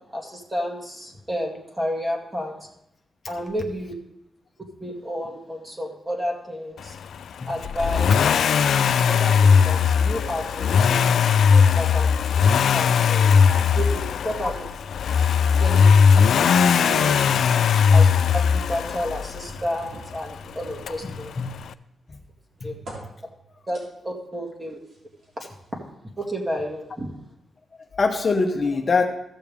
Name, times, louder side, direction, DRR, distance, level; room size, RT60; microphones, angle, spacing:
voice 1, 0.1-2.5 3.3-3.9 4.8-6.9 7.5-8.1 9.1-11.1 11.8-12.1 12.7-14.7 15.6-15.9 16.4-17.2 17.9-21.3 22.6-22.7 23.7-24.8 25.7-25.8 26.2-27.1, equal, 20° right, 0 dB, 2.2 m, -31 dB
Accelerating revving vroom, 7.6-19.6 20.9-21.0, left 6 dB, 80° left, 0.3 m, -18 dB
sound 1, 19.5-21.5 21.9-23.8 24.9-25.7 26.4-26.5, right 2 dB, 70° right, 3.3 m, -45 dB
voice 2, 21.0-21.6 22.6-22.8 27.8-29.1, left 4 dB, 40° left, 3 dB, 0.9 m, -25 dB
15.0 x 6.9 x 3.5 m, 0.81 s
cardioid pair, 105°, 0 cm